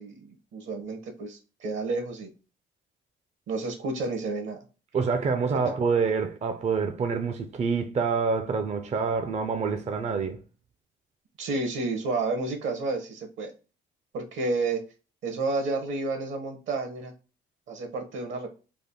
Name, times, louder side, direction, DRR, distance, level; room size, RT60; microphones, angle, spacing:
voice 1, 0.0-2.3 3.5-4.6 11.4-13.5 14.1-14.8 15.2-17.1 17.7-18.5, right 3 dB, 75° right, 1.0 m, -30 dB
voice 2, 4.9-10.4, right 5 dB, 35° right, 0.4 m, -27 dB
3.5 x 2.1 x 3.6 m
cardioid pair, 90°, 20 cm